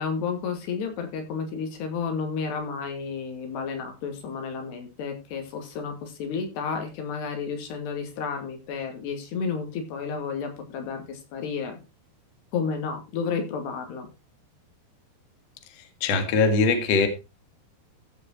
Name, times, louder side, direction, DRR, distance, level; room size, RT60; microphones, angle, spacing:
voice 1, 0.0-11.8 12.5-14.1, left 5 dB, 85° left, 5 dB, 4.5 m, -31 dB
voice 2, 16.0-17.1, left 4 dB, 50° left, 7 dB, 2.2 m, -21 dB
14.5 x 6.3 x 4.4 m, 0.28 s
omnidirectional pair, 4.7 m